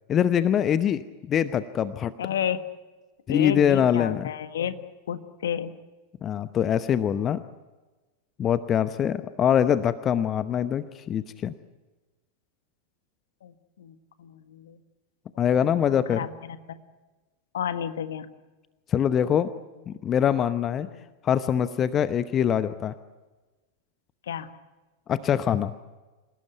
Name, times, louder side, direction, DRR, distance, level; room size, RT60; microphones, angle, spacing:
voice 1, 0.1-2.1 3.3-4.3 6.2-7.4 8.4-11.5 15.4-16.3 18.9-19.5 19.9-20.9 21.2-22.9 25.1-25.7, left 9 dB, 25° left, 13 dB, 0.9 m, -23 dB
voice 2, 2.2-2.6 3.3-4.8 5.1-5.7 13.4-14.8 15.8-16.8 17.5-18.3 20.8-21.0 24.3-24.5, left 8 dB, 60° left, 10 dB, 1.6 m, -32 dB
27.5 x 18.0 x 9.4 m, 1.2 s
figure-of-eight pair, 90°, 0 cm